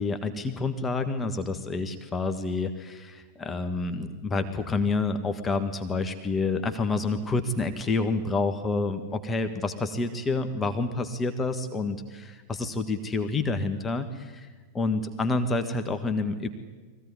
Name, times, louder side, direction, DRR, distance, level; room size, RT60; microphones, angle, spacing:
voice 1, 0.0-14.5 14.7-16.5, left 3 dB, 15° left, 8 dB, 1.5 m, -28 dB
22.5 x 16.0 x 9.9 m, 1.4 s
figure-of-eight pair, 90°, 0 cm